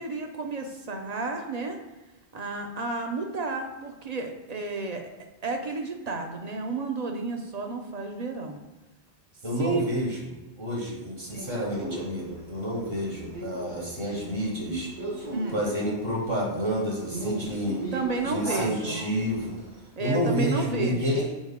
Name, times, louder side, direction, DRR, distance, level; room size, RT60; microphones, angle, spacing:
voice 1, 0.0-1.8 2.3-5.1 5.4-8.6 9.6-9.8 15.3-15.6 17.9-19.0 20.0-21.2, right 3 dB, 45° right, 4 dB, 0.6 m, -32 dB
voice 2, 9.4-14.9 15.5-17.9 18.2-19.6 20.0-21.3, equal, 60° right, -2 dB, 1.4 m, -29 dB
Male speech man speaking, 11.3-19.8, right 1 dB, 80° right, 1.9 m, -37 dB
6.2 x 4.4 x 3.6 m, 1.1 s
omnidirectional pair, 1.1 m